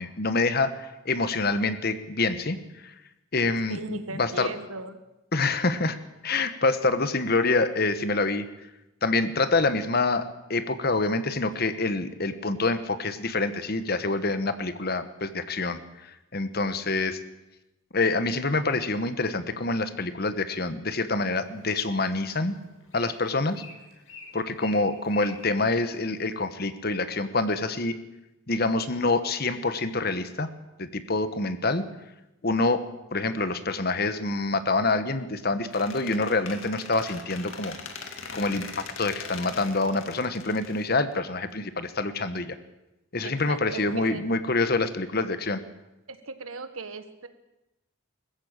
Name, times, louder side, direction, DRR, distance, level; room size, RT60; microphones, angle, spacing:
voice 1, 0.0-2.9 3.3-4.5 5.3-6.0 6.2-8.4 9.0-17.2 17.9-22.5 22.9-23.6 24.3-27.9 28.5-30.5 30.8-31.9 32.4-37.8 38.3-42.6 43.1-45.6, left 3 dB, 50° left, 11 dB, 1.3 m, -26 dB
voice 2, 3.3-5.0 23.5-23.6 43.2-44.2 46.1-47.3, right 3 dB, 90° right, 10 dB, 1.7 m, -38 dB
Bird, 21.4-26.5, left 3 dB, 90° left, 5.5 m, -48 dB
Squeak, 35.7-41.5, left 5 dB, 75° left, 2.3 m, -41 dB
20.5 x 14.5 x 8.9 m, 0.95 s
head